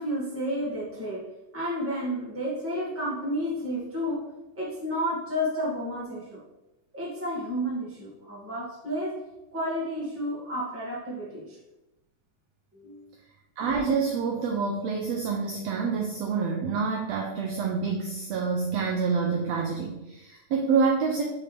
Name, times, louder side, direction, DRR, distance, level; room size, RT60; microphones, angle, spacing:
voice 1, 0.0-4.3 4.5-6.4 6.9-9.2 9.5-11.6 12.7-13.1, equal, 5° right, -6 dB, 1.3 m, -31 dB
voice 2, 13.6-21.2, right 5 dB, 85° right, 1 dB, 1.4 m, -27 dB
6.4 x 5.5 x 3.4 m, 0.95 s
omnidirectional pair, 3.7 m